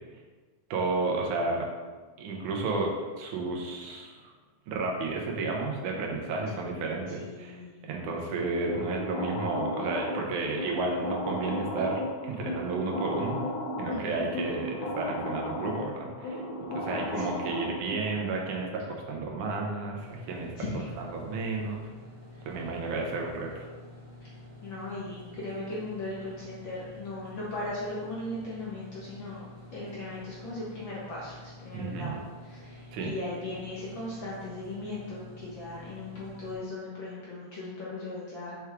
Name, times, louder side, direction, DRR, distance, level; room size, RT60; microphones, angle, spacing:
voice 1, 0.7-1.7 2.2-4.3 4.7-7.6 7.8-13.3 13.8-16.4 16.7-21.8 22.5-23.7 31.7-32.2 32.9-33.1, right 3 dB, 85° right, 0 dB, 2.4 m, -32 dB
voice 2, 7.2-7.7 13.9-14.3 16.9-17.4 20.5-20.9 24.2-24.3 24.6-32.1 32.4-38.6, left 2 dB, 55° left, -7 dB, 1.5 m, -38 dB
sound 1, 8.7-18.1, left 1 dB, 75° left, 2.3 m, -35 dB
sound 2, 20.0-36.5, left 2 dB, 10° right, 1.1 m, -48 dB
6.3 x 4.6 x 3.5 m, 1.3 s
omnidirectional pair, 3.4 m